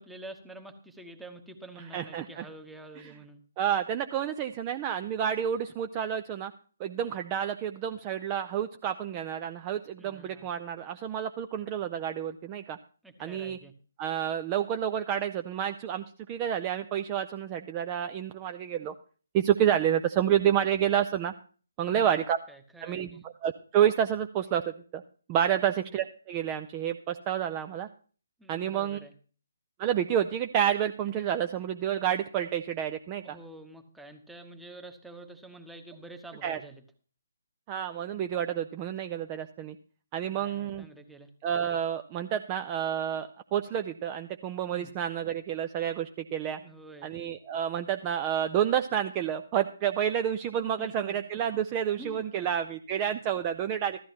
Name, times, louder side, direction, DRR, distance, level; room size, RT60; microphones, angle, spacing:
voice 1, 0.0-3.4 10.0-10.5 13.0-13.7 21.8-23.2 28.4-29.1 33.2-36.8 40.2-41.3 44.7-44.9 46.6-47.1 50.8-51.2 52.0-52.5, right 2 dB, 5° right, 5 dB, 1.1 m, -48 dB
voice 2, 1.9-2.4 3.0-3.1 3.6-6.5 6.8-12.8 13.2-13.6 14.0-18.9 19.3-21.3 21.8-22.4 22.8-25.0 25.3-27.9 28.5-29.0 29.8-33.4 36.4-36.6 37.7-39.8 40.1-40.9 41.4-46.6 47.0-54.0, right 9 dB, 25° right, 8 dB, 0.5 m, -29 dB
15.0 x 13.0 x 2.9 m, 0.40 s
figure-of-eight pair, 140°, 0 cm